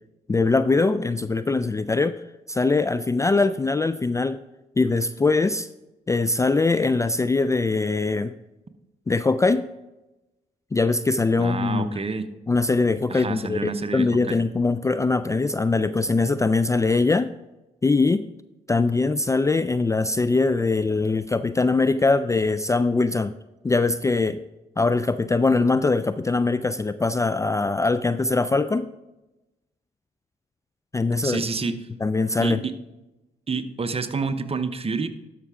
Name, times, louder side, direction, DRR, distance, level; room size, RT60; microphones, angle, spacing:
voice 1, 0.3-2.2 2.5-4.4 4.8-5.7 6.1-8.3 9.1-9.7 10.7-12.0 12.5-17.3 17.8-18.2 18.7-23.3 23.6-24.4 24.8-28.9 30.9-32.6, left 3 dB, 15° left, 12 dB, 0.4 m, -22 dB
voice 2, 11.4-12.2 13.1-14.1 31.2-31.7 32.4-32.7 33.5-35.1, right 4 dB, 35° right, 10 dB, 0.9 m, -28 dB
12.5 x 5.8 x 3.6 m, 0.98 s
hypercardioid pair, 50°, 18 cm